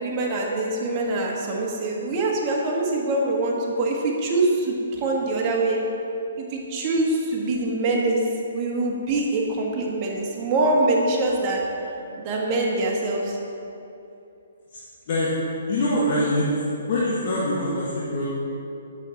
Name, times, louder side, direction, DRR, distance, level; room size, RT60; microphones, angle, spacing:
voice 1, 0.0-5.8 6.4-8.2 8.5-11.6 12.2-13.4, right 2 dB, 30° right, -2 dB, 1.6 m, -24 dB
voice 2, 15.7-16.5 16.9-18.3, left 1 dB, 50° left, -7 dB, 1.5 m, -23 dB
8.2 x 6.6 x 4.1 m, 2.7 s
hypercardioid pair, 135°, 0 cm